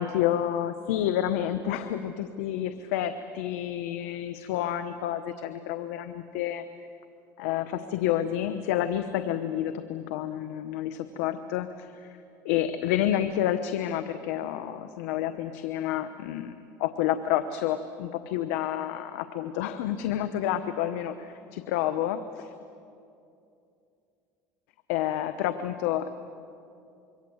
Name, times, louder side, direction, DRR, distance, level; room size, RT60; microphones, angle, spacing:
voice 1, 0.0-6.6 7.4-12.2 12.4-16.5 16.8-22.5 24.9-26.1, left 11 dB, 90° left, 10 dB, 1.0 m, -29 dB
26.0 x 23.5 x 8.0 m, 2.6 s
supercardioid pair, 105°, 8 cm